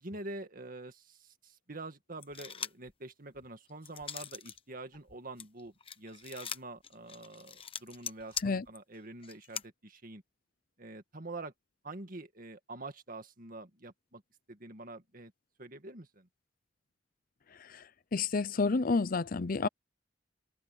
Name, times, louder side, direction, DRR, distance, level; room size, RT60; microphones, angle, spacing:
voice 1, 0.0-10.2 10.8-11.5 11.8-14.2 14.5-15.3 15.6-16.3, right 2 dB, 50° right, 2.0 m, -46 dB
sound 1, 2.2-2.9 3.4-4.6 4.9-9.7, left 7 dB, 30° left, 1.1 m, -42 dB
voice 2, 18.1-19.7, left 4 dB, 50° left, 0.6 m, -29 dB
head